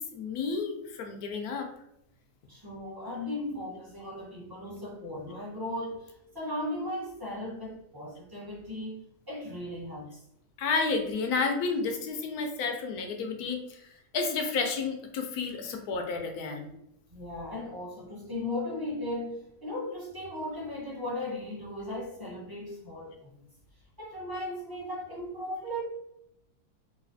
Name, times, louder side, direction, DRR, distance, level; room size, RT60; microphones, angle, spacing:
voice 1, 0.1-1.7 10.6-13.8 14.1-16.7, left 4 dB, 70° left, 4 dB, 1.0 m, -31 dB
voice 2, 2.5-10.2 17.1-23.4 24.0-25.8, left 1 dB, 25° right, -6 dB, 0.5 m, -37 dB
4.0 x 2.6 x 2.5 m, 0.80 s
omnidirectional pair, 1.8 m